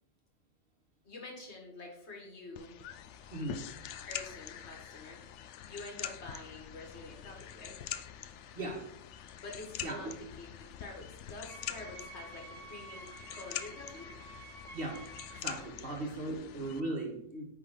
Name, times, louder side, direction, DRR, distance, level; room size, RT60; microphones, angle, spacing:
voice 1, 1.0-2.8 4.1-5.2 5.6-7.8 9.4-14.1 15.8-16.1, left 3 dB, 70° left, 1 dB, 2.0 m, -47 dB
sound 1, 2.6-16.8, left 10 dB, 90° left, 0.9 m, -45 dB
voice 2, 3.3-3.6 8.5-8.9 9.8-10.2 14.7-15.1 15.4-17.4, right 2 dB, 55° right, 0 dB, 2.1 m, -38 dB
Wind instrument woodwind instrument, 11.5-15.8, right 3 dB, 15° right, 0.8 m, -50 dB
10.0 x 3.9 x 5.1 m, 0.74 s
omnidirectional pair, 1.2 m